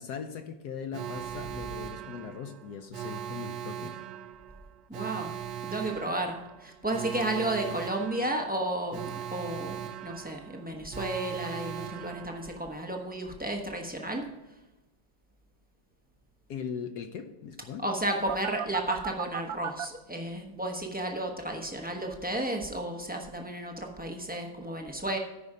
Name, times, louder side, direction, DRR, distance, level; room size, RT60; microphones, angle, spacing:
voice 1, 0.0-3.9 16.5-17.9, left 7 dB, 65° left, 7 dB, 1.1 m, -39 dB
Alarm, 0.9-12.8 18.3-19.9, right 10 dB, 75° right, 1.2 m, -39 dB
voice 2, 4.9-5.3 5.6-14.3 17.8-25.2, right 1 dB, 10° right, 1 dB, 0.4 m, -33 dB
13.5 x 5.5 x 4.9 m, 1.0 s
omnidirectional pair, 2.1 m